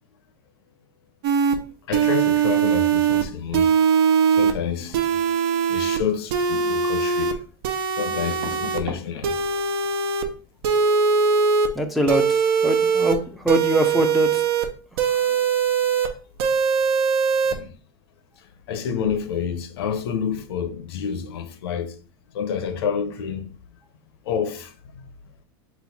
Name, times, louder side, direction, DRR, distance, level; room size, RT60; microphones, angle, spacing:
sound 1, 1.2-1.6 1.9-3.2 3.5-4.5 4.9-6.0 6.3-7.3 7.6-8.8 9.2-10.2 10.6-11.7 12.1-13.1 13.5-14.7 15.0-16.1 16.4-17.5, right 6 dB, 75° right, 0.6 m, -21 dB
voice 1, 1.9-3.7 4.3-5.4 5.7-7.4 8.0-9.4 17.5-17.7 18.7-21.9 22.3-23.5 24.3-25.1, left 7 dB, 90° left, 0.6 m, -28 dB
sound 2, 8.3-9.1 9.4-9.8 10.0-10.2 13.1-13.3 13.5-13.8 14.0-14.2, right 4 dB, 45° right, 1.0 m, -39 dB
voice 2, 11.8-13.2 13.4-14.4, right 1 dB, ahead, 0.3 m, -23 dB
4.1 x 2.4 x 4.0 m
supercardioid pair, 155°, 13 cm